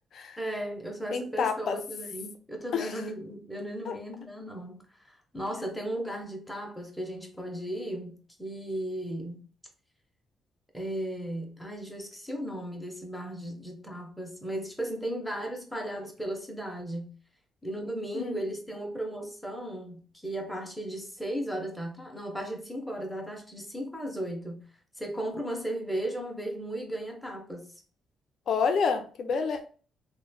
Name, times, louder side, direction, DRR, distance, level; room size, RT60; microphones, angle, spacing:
voice 1, 0.4-9.5 10.7-17.2 17.6-24.6 25.0-27.7, right 1 dB, 5° left, 0.7 m, -36 dB
voice 2, 1.1-1.8 2.7-2.9 3.9-4.0 18.1-18.4 28.5-29.8, left 5 dB, 60° left, 0.4 m, -29 dB
3.0 x 2.1 x 2.2 m
cardioid pair, 90°, 0 cm